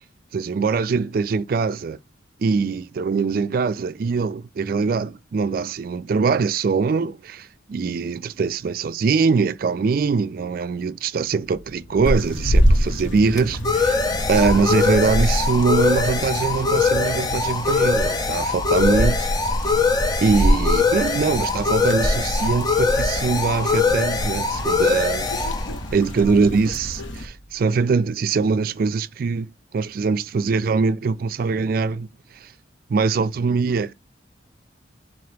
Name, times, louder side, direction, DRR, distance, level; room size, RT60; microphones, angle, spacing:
voice 1, 0.3-2.0 2.4-19.3 19.6-19.7 20.2-25.3 25.9-32.1 32.4-32.5 32.9-33.9, right 4 dB, 50° right, 0.3 m, -22 dB
sound 1, 11.8-27.1, left 4 dB, 20° left, 0.4 m, -23 dB
sound 2, 12.0-27.3, equal, 80° left, 0.9 m, -25 dB
4.2 x 2.8 x 3.3 m
head